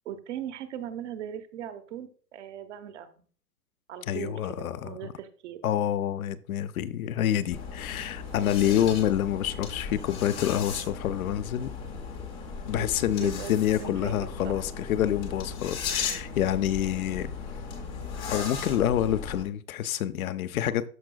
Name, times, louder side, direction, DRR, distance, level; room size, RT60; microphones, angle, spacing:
voice 1, 0.0-3.2 3.9-5.6 8.3-8.9 12.8-14.2 14.4-14.6, right 10 dB, 50° right, 0.9 m, -39 dB
voice 2, 4.1-5.0 5.6-11.7 12.7-17.3 18.3-20.8, left 11 dB, 60° left, 0.7 m, -27 dB
sound 1, 7.5-19.4, left 5 dB, 10° left, 0.4 m, -36 dB
12.5 x 4.7 x 2.3 m
hypercardioid pair, 135°, 47 cm